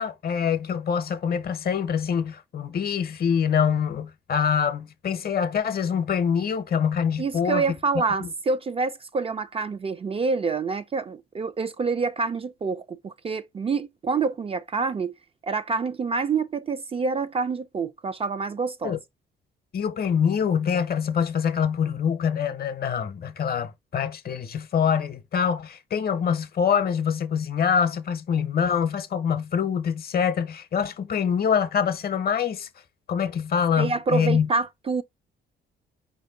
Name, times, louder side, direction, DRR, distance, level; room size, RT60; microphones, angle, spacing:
voice 1, 0.0-7.6 8.2-8.3 18.8-19.0 19.7-32.7 33.1-34.5, left 7 dB, 50° left, 0.7 m, -25 dB
voice 2, 7.2-15.1 15.4-19.0 33.8-35.0, right 4 dB, 30° right, 0.4 m, -27 dB
5.0 x 2.6 x 3.8 m
cardioid pair, 90°, 20 cm